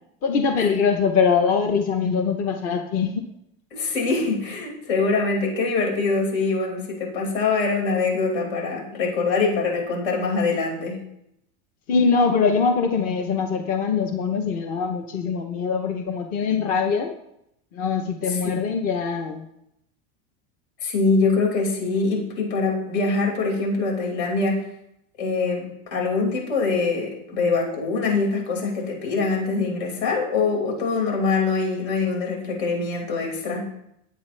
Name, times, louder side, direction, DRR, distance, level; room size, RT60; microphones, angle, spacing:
voice 1, 0.2-3.2 11.9-17.1 17.7-19.5, left 5 dB, 30° left, 5 dB, 0.8 m, -22 dB
voice 2, 3.7-11.0 20.8-24.6 25.2-33.7, left 4 dB, 75° left, -2 dB, 5.4 m, -24 dB
18.5 x 8.3 x 3.3 m, 0.80 s
supercardioid pair, 175°, 30 cm